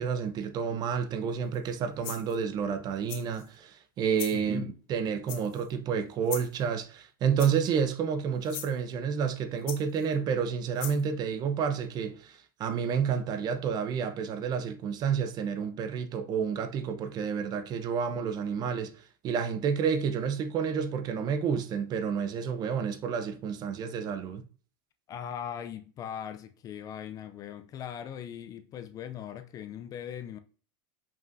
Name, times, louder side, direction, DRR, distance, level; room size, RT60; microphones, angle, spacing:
voice 1, 0.0-4.6 4.9-24.4, right 7 dB, 35° right, 0.8 m, -30 dB
sound 1, 1.5-1.7 2.0-2.4 3.1-3.5 4.1-4.4 5.3-5.7 6.3-6.6 7.4-7.8 8.4-8.7 9.7-10.1 10.8-11.0, left 10 dB, 50° left, 1.2 m, -40 dB
voice 2, 4.3-4.7 25.1-30.4, left 9 dB, 30° left, 0.5 m, -40 dB
7.3 x 5.5 x 2.7 m
supercardioid pair, 135°, 12 cm